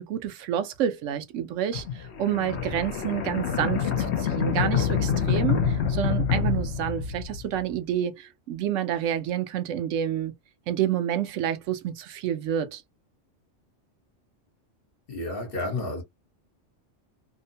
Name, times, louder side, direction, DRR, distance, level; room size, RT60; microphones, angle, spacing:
voice 1, 0.0-10.3 10.7-12.8, right 10 dB, 80° right, 0.9 m, -29 dB
sound 1, 1.7-7.6, left 7 dB, 65° left, 0.8 m, -26 dB
voice 2, 15.1-16.0, left 2 dB, 50° left, 1.2 m, -31 dB
2.7 x 2.1 x 2.6 m
omnidirectional pair, 1.3 m